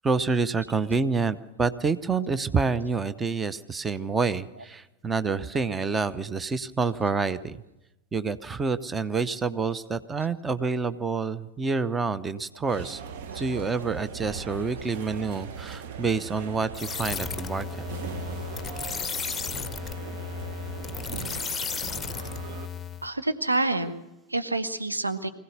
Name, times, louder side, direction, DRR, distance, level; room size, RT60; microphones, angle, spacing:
voice 1, 0.0-7.6 8.1-13.0 13.3-17.7, right 4 dB, 15° right, 14 dB, 0.8 m, -28 dB
sound 1, 12.7-22.7, right 7 dB, 55° right, 1.3 m, -39 dB
sound 2, 16.7-23.1, left 6 dB, 15° left, 0.9 m, -34 dB
voice 2, 23.0-25.3, right 2 dB, 80° right, 9 dB, 1.3 m, -28 dB
24.0 x 16.5 x 6.7 m, 0.97 s
figure-of-eight pair, 90°, 0 cm